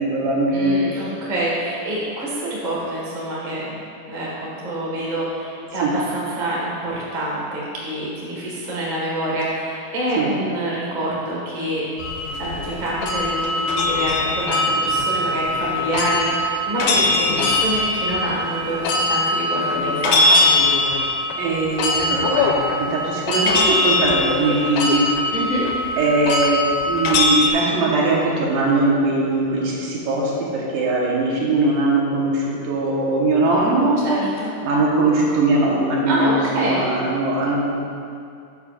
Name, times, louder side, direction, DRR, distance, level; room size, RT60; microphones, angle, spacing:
voice 1, 0.0-1.0 5.8-5.9 10.2-10.3 21.4-25.1 26.0-34.2 34.6-37.8, right 2 dB, 75° right, -4 dB, 2.8 m, -20 dB
voice 2, 0.5-3.7 4.1-11.9 12.4-20.5 25.3-25.7 34.0-34.5 36.0-36.8, right 1 dB, 40° right, -6 dB, 0.6 m, -26 dB
sound 1, 12.0-27.5, left 2 dB, 85° left, 2.3 m, -21 dB
12.5 x 6.5 x 2.5 m, 2.4 s
omnidirectional pair, 3.9 m